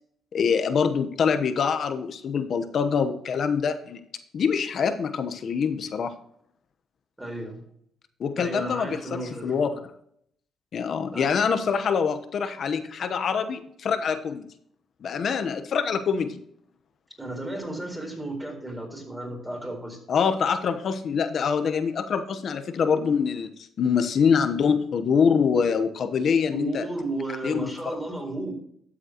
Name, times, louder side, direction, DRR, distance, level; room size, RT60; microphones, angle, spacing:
voice 1, 0.3-4.0 4.3-6.1 8.2-9.0 9.4-9.7 10.7-14.4 15.0-16.4 20.1-23.5 23.8-26.8 27.4-27.7, left 6 dB, 55° left, 9 dB, 1.0 m, -24 dB
voice 2, 7.2-7.6 8.4-9.6 11.1-11.3 17.2-20.0 26.5-28.5, right 2 dB, 10° right, 1 dB, 4.1 m, -33 dB
12.5 x 7.6 x 3.0 m, 0.68 s
cardioid pair, 90°, 0 cm